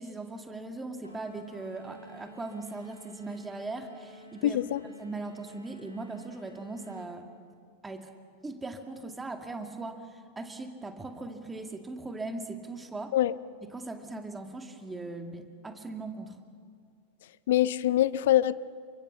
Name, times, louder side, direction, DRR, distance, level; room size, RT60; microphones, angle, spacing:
voice 1, 0.0-4.6 5.0-7.3 7.8-8.1 8.4-13.1 13.7-16.4, right 3 dB, 10° right, 6 dB, 2.2 m, -39 dB
sound 1, 1.0-7.1, equal, 85° left, 4.4 m, -51 dB
voice 2, 4.4-4.8 13.1-13.3 17.5-18.5, left 13 dB, 55° left, 19 dB, 0.6 m, -24 dB
28.5 x 24.0 x 7.1 m, 2.1 s
figure-of-eight pair, 90°, 0 cm